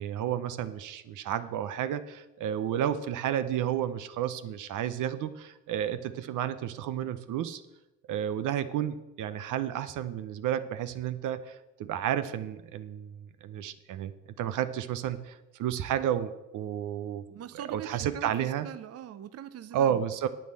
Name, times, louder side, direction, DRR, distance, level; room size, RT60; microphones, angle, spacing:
voice 1, 0.0-7.6 8.1-14.1 14.4-17.2 17.5-18.7 19.7-20.3, right 10 dB, 80° right, 12 dB, 0.9 m, -31 dB
voice 2, 17.3-20.0, right 11 dB, 50° right, 13 dB, 0.7 m, -42 dB
9.1 x 8.4 x 7.6 m, 1.0 s
cardioid pair, 85°, 31 cm